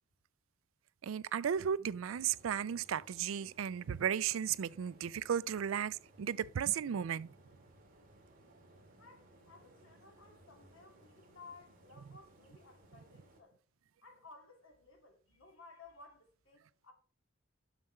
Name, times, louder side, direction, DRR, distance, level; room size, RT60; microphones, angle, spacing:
voice 1, 1.0-7.3, right 8 dB, 80° right, 0.4 m, -35 dB
sound 1, 2.0-13.4, right 1 dB, 45° right, 2.2 m, -62 dB
voice 2, 9.0-13.6 14.0-16.9, left 3 dB, 80° left, 2.3 m, -58 dB
7.4 x 6.4 x 4.4 m
head